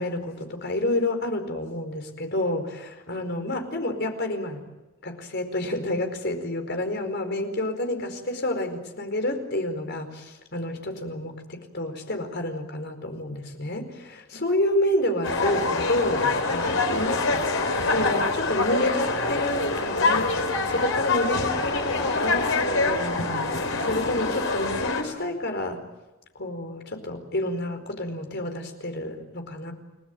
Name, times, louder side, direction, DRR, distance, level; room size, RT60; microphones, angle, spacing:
voice 1, 0.0-4.6 5.0-25.8 26.3-29.7, left 1 dB, 55° left, 6 dB, 4.8 m, -29 dB
sound 1, 15.2-25.0, left 3 dB, 75° left, 4.4 m, -25 dB
30.0 x 19.5 x 9.2 m, 1.1 s
head